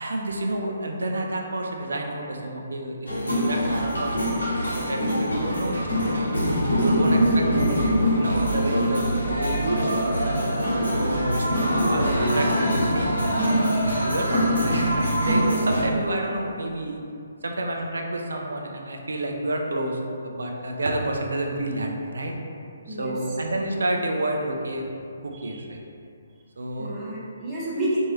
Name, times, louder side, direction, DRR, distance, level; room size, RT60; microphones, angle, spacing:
voice 1, 0.0-6.3 6.8-10.6 10.9-13.3 13.8-17.0 17.4-22.3 22.9-24.8 25.2-25.8 26.6-26.9, right 1 dB, 65° right, 1 dB, 0.4 m, -29 dB
sound 1, 3.1-15.8, equal, 75° left, 1.0 m, -23 dB
voice 2, 7.1-7.8 22.9-23.2 25.3-25.6 26.8-28.1, right 2 dB, 15° right, -9 dB, 0.7 m, -28 dB
2.9 x 2.6 x 2.9 m, 2.5 s
figure-of-eight pair, 135°, 0 cm